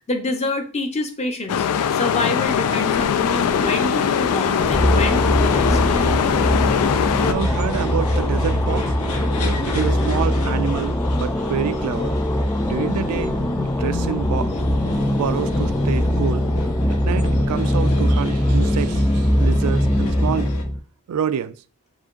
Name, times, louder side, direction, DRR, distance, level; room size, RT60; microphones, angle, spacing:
voice 1, 0.1-1.7 1.9-5.8, left 2 dB, 30° left, 0.7 m, -26 dB
sound 1, 1.5-7.3, left 8 dB, 90° left, 0.3 m, -21 dB
sound 2, 2.4-20.6, left 2 dB, 75° left, 0.9 m, -31 dB
sound 3, 4.6-20.8, left 1 dB, 10° left, 0.3 m, -21 dB
voice 2, 7.2-8.9 9.7-12.1 12.6-13.4 13.8-14.6 15.1-16.5 17.0-20.5 21.1-21.6, right 8 dB, 85° right, 0.3 m, -27 dB
4.8 x 3.7 x 2.4 m
head